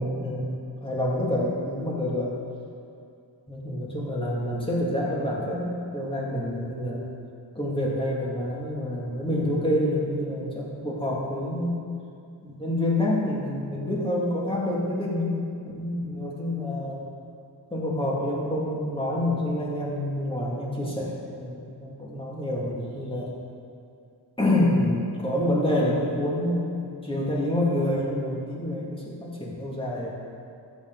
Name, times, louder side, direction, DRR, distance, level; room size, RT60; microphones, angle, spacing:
voice 1, 0.0-2.4 3.5-7.1 7.5-11.8 12.4-15.4 15.7-17.1 17.7-23.3 24.4-30.1, left 1 dB, 10° left, -5 dB, 2.6 m, -27 dB
14.0 x 8.4 x 4.1 m, 2.4 s
wide cardioid pair, 90°, 43 cm